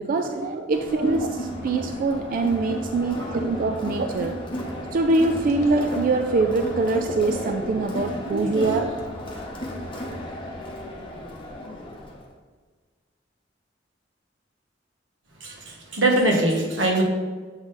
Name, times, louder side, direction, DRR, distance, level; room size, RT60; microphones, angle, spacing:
voice 1, 0.0-4.3 4.9-8.9, right 3 dB, 45° right, 6 dB, 0.3 m, -24 dB
Crowd, 0.7-12.3, left 1 dB, 25° left, 0.9 m, -34 dB
voice 2, 1.0-1.4 3.2-3.4 8.2-8.7 9.9-10.0 15.4-17.0, right 1 dB, 90° right, 0 dB, 1.3 m, -24 dB
sound 1, 4.5-9.8, left 1 dB, 45° left, 1.2 m, -38 dB
7.2 x 3.8 x 4.0 m, 1.5 s
head